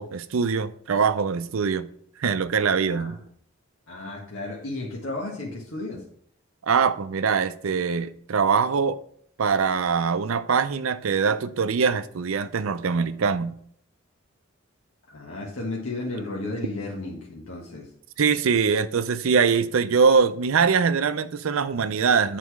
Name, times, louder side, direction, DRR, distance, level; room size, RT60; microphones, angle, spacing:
voice 1, 0.0-1.9 2.2-3.2 6.6-9.0 9.4-13.5 18.2-22.4, right 5 dB, 75° right, 0.5 m, -23 dB
voice 2, 2.9-3.2 3.9-6.0 15.1-17.9, left 2 dB, 70° left, 1.4 m, -33 dB
8.3 x 4.1 x 4.7 m
head